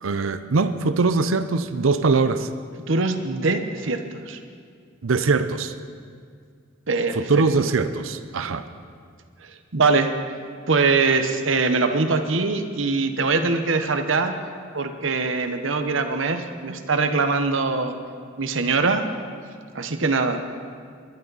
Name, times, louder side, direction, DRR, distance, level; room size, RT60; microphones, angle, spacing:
voice 1, 0.0-2.5 5.0-5.7 7.1-8.6, right 4 dB, 85° right, 12 dB, 0.6 m, -22 dB
voice 2, 2.9-4.4 6.9-7.2 9.4-10.1 10.7-14.4 14.7-17.9 18.4-19.0 19.7-20.4, right 3 dB, 70° right, 7 dB, 1.0 m, -22 dB
21.5 x 12.0 x 4.1 m, 2.1 s
head